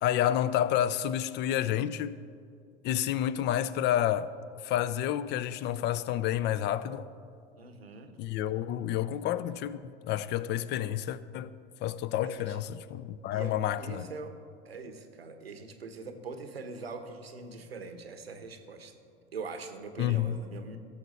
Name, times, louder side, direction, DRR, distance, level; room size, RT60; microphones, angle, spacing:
voice 1, 0.0-2.2 2.8-4.3 4.6-7.1 8.2-11.5 11.8-14.1 20.0-20.4, left 11 dB, 35° left, 0.4 m, -29 dB
voice 2, 7.6-8.2 12.2-12.6 13.3-14.3 14.6-18.9 19.3-20.8, right 4 dB, 85° right, 0.9 m, -42 dB
16.0 x 7.1 x 4.1 m
figure-of-eight pair, 75°, 30 cm